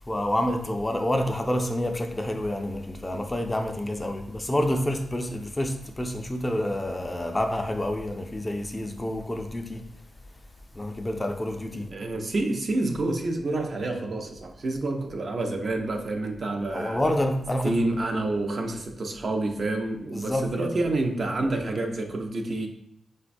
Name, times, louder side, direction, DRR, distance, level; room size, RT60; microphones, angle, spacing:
voice 1, 0.1-9.9 10.7-11.9 16.7-17.8 20.1-20.7, left 1 dB, 20° left, 0.3 m, -28 dB
voice 2, 11.7-17.0 17.6-22.7, right 2 dB, 55° right, 0.4 m, -28 dB
3.9 x 2.1 x 2.5 m
cardioid pair, 65°, 0 cm